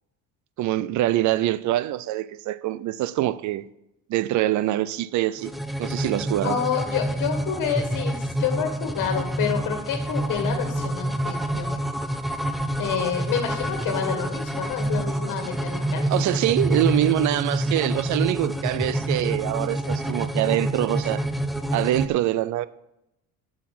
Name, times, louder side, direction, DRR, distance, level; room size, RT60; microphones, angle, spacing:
voice 1, 0.6-3.7 4.1-5.5 5.8-6.6 16.1-21.2 21.7-22.7, right 14 dB, 60° right, 0.5 m, -24 dB
sound 1, 5.4-22.1, right 1 dB, ahead, 0.3 m, -27 dB
voice 2, 6.4-11.7 12.8-16.0, left 8 dB, 70° left, 1.6 m, -28 dB
8.2 x 6.4 x 7.6 m
cardioid pair, 155°, 33 cm